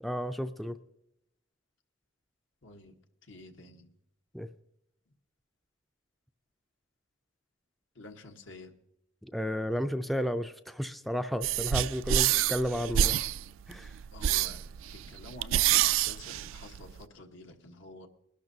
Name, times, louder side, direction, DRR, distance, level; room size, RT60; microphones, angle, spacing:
voice 1, 0.0-0.8 4.3-4.5 9.2-13.2 13.7-13.9, equal, ahead, 9 dB, 0.3 m, -32 dB
voice 2, 2.6-2.9 3.3-3.9 7.9-8.7 14.1-18.1, left 2 dB, 75° left, 4 dB, 1.2 m, -49 dB
sound 1, 11.4-17.0, right 11 dB, 85° right, 0.3 m, -28 dB
21.0 x 12.0 x 2.7 m, 0.82 s
head